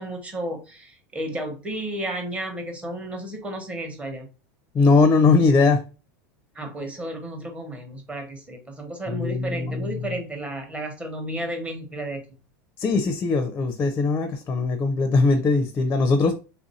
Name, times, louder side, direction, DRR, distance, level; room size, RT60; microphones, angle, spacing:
voice 1, 0.0-4.3 6.5-12.2, right 1 dB, 15° right, 0.9 m, -32 dB
voice 2, 4.7-5.8 9.1-10.1 12.8-16.3, left 3 dB, 20° left, 0.5 m, -20 dB
3.3 x 2.5 x 4.1 m
supercardioid pair, 150°, 9 cm